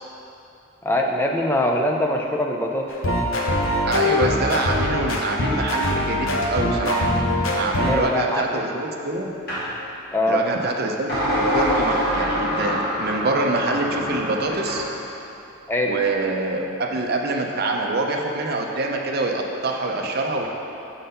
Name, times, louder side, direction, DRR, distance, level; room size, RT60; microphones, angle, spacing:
voice 1, 0.8-3.1 7.6-8.4 10.1-10.4 15.7-16.0, left 1 dB, 10° left, 0 dB, 0.4 m, -23 dB
sound 1, 2.9-8.0, left 1 dB, 65° left, 0.7 m, -23 dB
voice 2, 3.8-7.0 7.5-9.3 10.3-14.8 15.9-20.5, right 2 dB, 45° right, 2 dB, 0.5 m, -25 dB
sound 2, 9.5-9.7 11.1-14.9, equal, 45° left, 1.6 m, -24 dB
6.5 x 3.9 x 5.5 m, 2.8 s
head